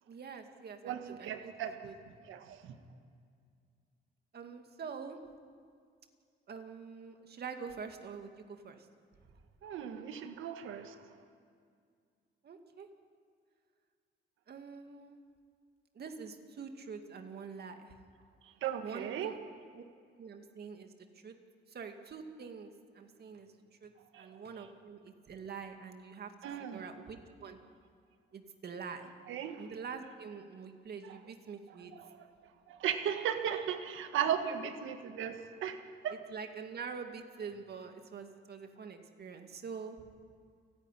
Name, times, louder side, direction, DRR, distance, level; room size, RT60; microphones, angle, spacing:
voice 1, 0.1-1.5 1.8-2.0 4.3-5.2 6.5-8.9 12.4-12.9 14.5-15.2 15.9-17.9 18.8-19.4 19.7-19.8 20.2-21.3 21.7-23.5 23.8-23.9 24.2-26.3 26.6-27.6 28.3-29.1 29.6-31.9 36.1-40.0, right 5 dB, 55° right, 5 dB, 2.3 m, -45 dB
voice 2, 0.8-1.7 2.3-2.8 9.6-11.0 18.6-19.3 24.1-24.3 26.4-26.8 29.3-29.6 32.0-32.1 32.7-36.1, right 9 dB, 85° right, 7 dB, 1.7 m, -36 dB
29.0 x 10.0 x 10.0 m, 2.2 s
cardioid pair, 90°, 20 cm